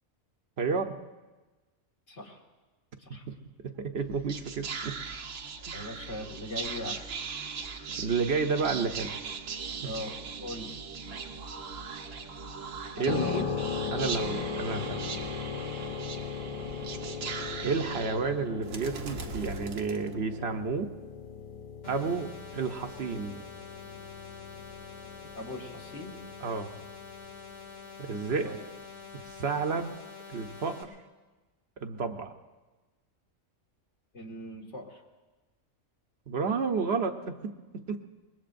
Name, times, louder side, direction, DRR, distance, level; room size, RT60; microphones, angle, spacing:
voice 1, 0.6-1.0 3.3-3.4 3.8-4.9 8.0-9.1 9.8-9.9 13.0-13.3 13.9-15.0 17.6-20.9 21.8-23.4 26.4-26.8 28.0-28.5 29.1-29.9 30.3-30.9 31.8-32.3 36.3-37.1 37.4-38.1, right 5 dB, 60° right, 5 dB, 1.0 m, -31 dB
voice 2, 2.1-2.4 3.0-3.3 5.7-7.1 9.8-10.8 13.0-13.5 25.4-26.2 28.4-28.6 34.1-35.0, left 2 dB, 65° left, -1 dB, 2.1 m, -39 dB
Whispering, 4.0-20.6, right 5 dB, 85° right, 1.3 m, -39 dB
sound 1, 13.1-27.7, left 6 dB, 45° left, 0.4 m, -38 dB
sound 2, 21.8-30.8, left 5 dB, 85° left, 2.7 m, -46 dB
25.0 x 21.0 x 2.6 m, 1.2 s
omnidirectional pair, 1.3 m